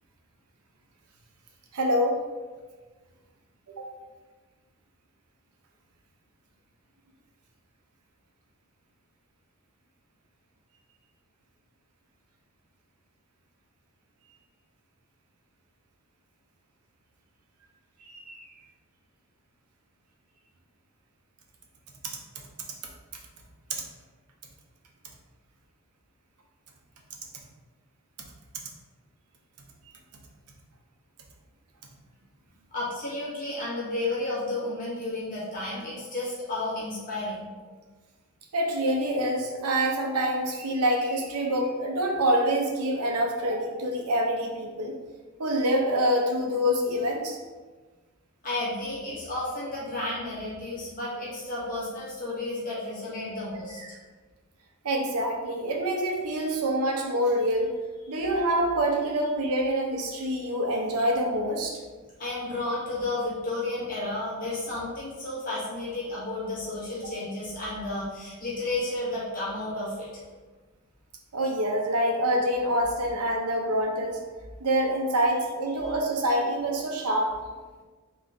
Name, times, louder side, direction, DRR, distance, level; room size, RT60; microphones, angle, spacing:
voice 1, 1.7-2.2 3.8-3.9 18.1-18.4 23.7-23.8 38.5-45.0 45.4-47.4 53.8-53.9 54.8-57.7 58.1-61.8 71.3-74.2 74.6-77.3, equal, 85° right, 0 dB, 0.8 m, -26 dB
voice 2, 32.7-37.5 48.4-53.8 56.4-56.5 58.1-58.2 62.2-70.2 75.8-75.9, left 2 dB, 40° left, -8 dB, 1.3 m, -32 dB
3.8 x 3.2 x 3.5 m, 1.3 s
head